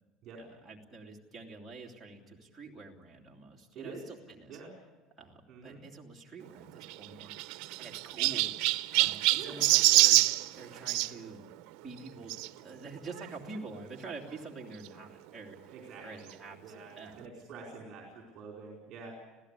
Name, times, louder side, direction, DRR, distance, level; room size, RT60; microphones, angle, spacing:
voice 1, 0.4-4.6 5.2-10.2 10.5-11.5 11.8-12.3 12.6-17.4, right 3 dB, 5° right, -4 dB, 2.9 m, -47 dB
voice 2, 5.5-5.8 9.4-9.6 15.7-16.3 16.6-19.1, right 4 dB, 35° right, 0 dB, 4.7 m, -46 dB
Chirp tweet, 6.8-11.1 12.3-12.5 13.2-13.3 13.5-13.6 14.9-15.0, right 20 dB, 65° right, 0.7 m, -26 dB
26.5 x 16.5 x 8.4 m, 1.2 s
cardioid pair, 175°, 0 cm